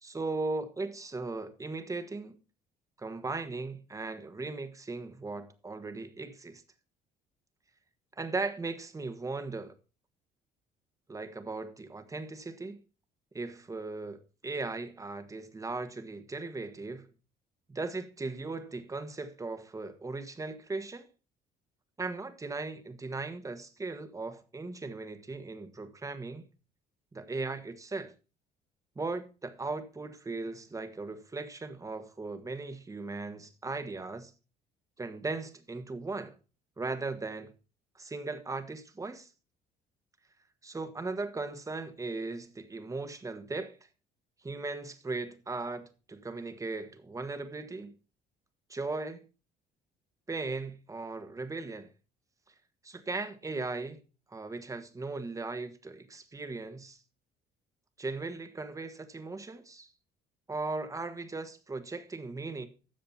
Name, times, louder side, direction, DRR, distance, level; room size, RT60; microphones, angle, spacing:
voice 1, 0.0-2.3 3.0-6.6 8.2-9.7 11.1-12.8 13.3-17.1 17.7-21.1 22.0-26.4 27.1-28.1 28.9-34.3 35.0-36.3 36.8-37.5 37.9-39.3 40.6-43.8 44.4-45.8 46.1-47.9 48.7-49.3 50.3-51.9 52.8-54.0 54.3-57.0 58.0-59.9 60.5-62.7, right 3 dB, 20° right, 1.5 m, -38 dB
13.0 x 7.5 x 4.3 m
cardioid pair, 110°, 17 cm